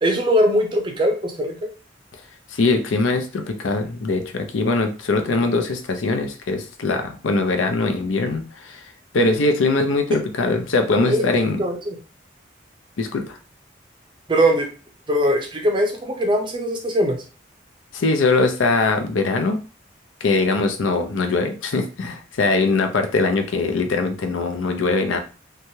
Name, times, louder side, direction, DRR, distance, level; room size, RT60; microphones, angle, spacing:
voice 1, 0.0-1.5 11.0-11.2 11.6-12.0 14.3-14.7 15.1-17.2, equal, 25° right, 3 dB, 0.5 m, -20 dB
voice 2, 2.5-8.9 9.1-11.6 13.0-13.4 17.9-19.6 20.2-25.2, left 3 dB, 85° left, 6 dB, 0.5 m, -21 dB
3.1 x 2.2 x 2.7 m, 0.36 s
head